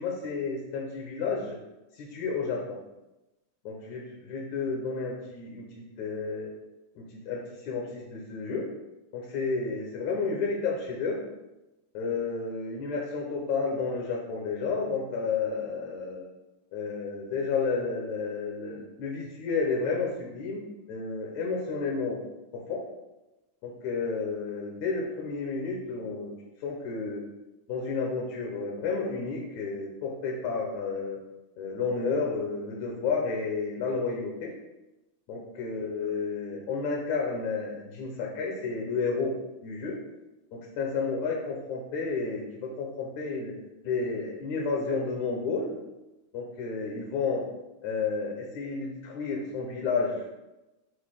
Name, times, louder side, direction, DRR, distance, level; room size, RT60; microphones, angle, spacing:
voice 1, 0.0-1.6 1.9-2.6 3.6-6.5 7.0-8.7 9.1-11.2 11.9-16.3 16.7-20.6 20.9-22.2 22.5-22.8 23.6-26.3 26.6-27.2 27.7-31.2 31.6-34.5 35.3-39.3 39.6-40.0 40.5-43.6 43.8-45.8 46.3-47.4 47.8-50.3, left 4 dB, 70° left, -1 dB, 2.2 m, -31 dB
8.1 x 2.9 x 5.8 m, 1.0 s
omnidirectional pair, 3.7 m